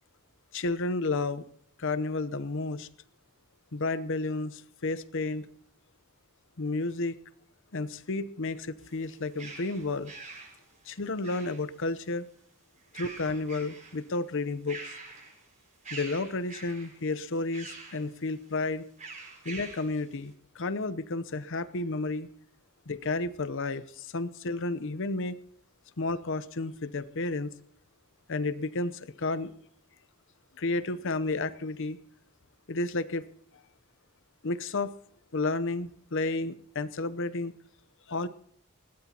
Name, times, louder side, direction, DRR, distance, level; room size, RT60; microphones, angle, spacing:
voice 1, 0.5-1.4 1.8-2.9 3.7-5.5 6.6-7.2 7.7-10.1 10.9-12.3 12.9-15.0 15.9-18.8 19.4-22.3 22.9-25.4 26.0-27.5 28.3-29.5 30.6-32.0 32.7-33.3 34.4-34.9 35.3-37.5 38.1-38.3, left 3 dB, 60° left, 15 dB, 0.8 m, -31 dB
sound 1, 8.8-11.9 12.8-14.0 14.4-15.5 15.8-17.0 17.5-18.1 19.0-19.9, right 3 dB, 35° right, 5.7 m, -45 dB
21.0 x 17.5 x 2.9 m, 0.65 s
head